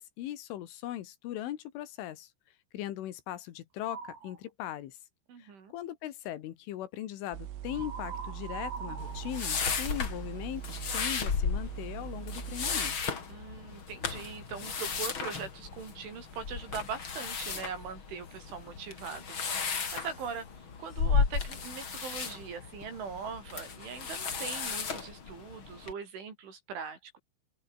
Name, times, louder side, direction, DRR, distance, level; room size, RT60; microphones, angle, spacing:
voice 1, 0.0-2.3 2.7-5.0 5.4-10.6 10.9-12.9, left 13 dB, 75° left, 4.1 m, -39 dB
sound 1, 3.8-4.4 7.7-10.4, right 5 dB, 50° right, 7.3 m, -43 dB
voice 2, 5.3-5.7 13.3-20.5 20.8-27.2, right 6 dB, 70° right, 7.8 m, -41 dB
sound 2, 7.3-12.9, right 12 dB, 85° right, 4.8 m, -42 dB
sound 3, 9.0-25.9, left 5 dB, 35° left, 2.5 m, -35 dB
open air
omnidirectional pair, 5.8 m